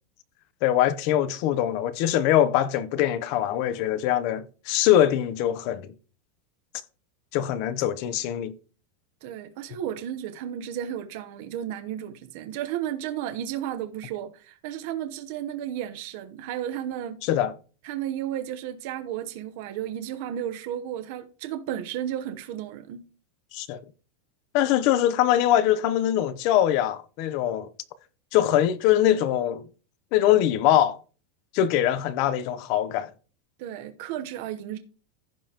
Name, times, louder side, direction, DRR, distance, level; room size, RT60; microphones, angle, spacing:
voice 1, 0.6-5.9 7.3-8.5 17.2-17.5 23.5-23.8 24.5-27.7 28.3-29.7 30.1-31.0 31.5-33.1, left 11 dB, 40° left, 0.6 m, -23 dB
voice 2, 9.2-17.2 17.8-23.0 33.6-34.8, right 11 dB, 45° right, 0.8 m, -33 dB
15.5 x 5.3 x 2.9 m
supercardioid pair, 180°, 0 cm